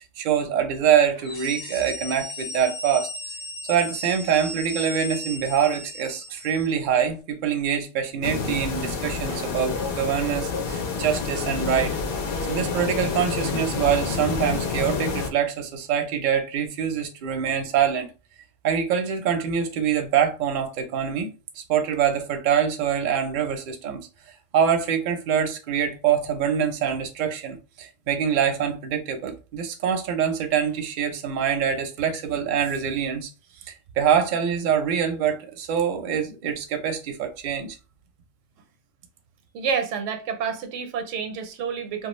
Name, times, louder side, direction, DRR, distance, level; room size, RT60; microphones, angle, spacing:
voice 1, 0.0-3.1 3.7-12.0 12.5-18.1 18.6-24.1 24.5-33.3 34.0-37.8, right 8 dB, 55° right, 0.6 m, -24 dB
sound 1, 1.2-6.9, left 2 dB, 25° left, 0.5 m, -36 dB
sound 2, 8.2-15.3, left 4 dB, 60° left, 0.7 m, -28 dB
voice 2, 39.5-42.1, right 6 dB, 85° right, 0.9 m, -29 dB
2.3 x 2.2 x 3.0 m
omnidirectional pair, 1.3 m